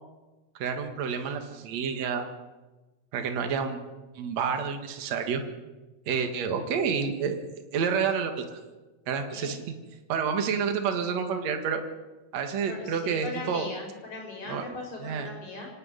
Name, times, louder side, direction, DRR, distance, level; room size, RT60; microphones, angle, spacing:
voice 1, 0.5-2.3 3.1-3.9 4.2-5.4 6.1-7.4 7.7-8.6 9.1-9.6 10.1-11.8 12.3-13.7 14.5-14.7 15.0-15.3, right 6 dB, 65° right, 5 dB, 2.8 m, -29 dB
voice 2, 12.7-15.7, left 3 dB, 80° left, 1 dB, 6.8 m, -39 dB
25.5 x 11.0 x 9.6 m, 1.2 s
omnidirectional pair, 3.3 m